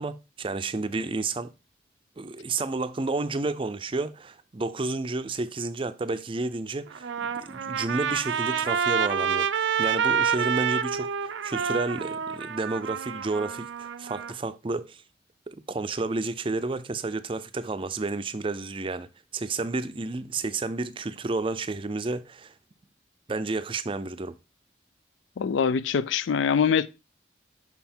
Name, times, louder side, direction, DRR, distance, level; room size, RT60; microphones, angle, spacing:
voice 1, 0.0-1.5 2.2-9.5 9.8-15.0 15.7-19.1 19.3-22.5 23.3-24.3, right 3 dB, 30° right, 0.5 m, -31 dB
Trumpet, 6.9-14.3, right 7 dB, 85° right, 0.5 m, -28 dB
voice 2, 25.4-26.9, left 6 dB, 85° left, 0.4 m, -23 dB
5.9 x 5.7 x 4.3 m
head